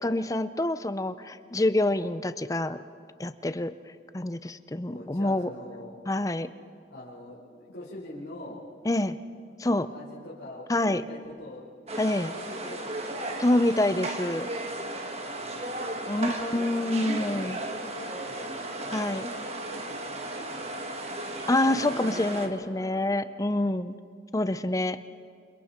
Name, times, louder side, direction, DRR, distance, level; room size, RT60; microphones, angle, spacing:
voice 1, 0.0-2.8 3.2-3.7 4.1-5.5 6.1-6.5 8.9-9.2 9.6-9.9 10.7-11.0 12.0-12.3 13.4-14.5 16.1-17.6 18.9-19.3 21.5-24.0 24.3-25.0, left 1 dB, 15° left, 12 dB, 0.5 m, -26 dB
voice 2, 4.9-5.9 6.9-8.6 9.6-11.7 12.0-13.2 14.9-16.2 17.1-20.9 21.4-23.2 24.5-24.6, left 1 dB, 65° left, -10 dB, 5.0 m, -44 dB
sound 1, 11.9-22.5, right 2 dB, 35° right, 1.5 m, -35 dB
28.5 x 27.5 x 4.5 m, 2.3 s
head